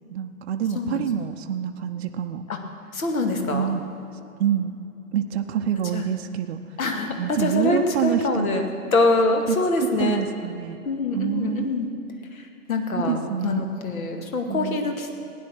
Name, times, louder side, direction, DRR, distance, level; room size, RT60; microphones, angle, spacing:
voice 1, 0.1-2.4 3.5-3.8 4.4-4.8 5.1-6.8 7.2-8.6 9.5-9.6 10.0-10.8 11.1-11.8 13.0-13.6 14.5-15.0, right 9 dB, 45° right, 6 dB, 0.7 m, -27 dB
voice 2, 2.9-3.7 5.9-6.1 6.8-10.2 10.9-11.9 12.3-15.1, left 2 dB, 65° left, 4 dB, 2.1 m, -24 dB
16.0 x 10.5 x 6.2 m, 2.7 s
figure-of-eight pair, 125°, 45 cm